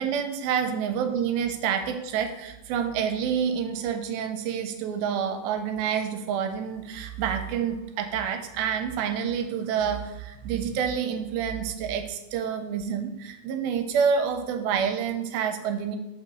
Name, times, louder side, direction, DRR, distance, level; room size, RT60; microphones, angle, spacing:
voice 1, 0.0-16.0, right 7 dB, 85° right, 6 dB, 2.4 m, -28 dB
5.7 x 3.8 x 6.0 m, 0.97 s
omnidirectional pair, 4.3 m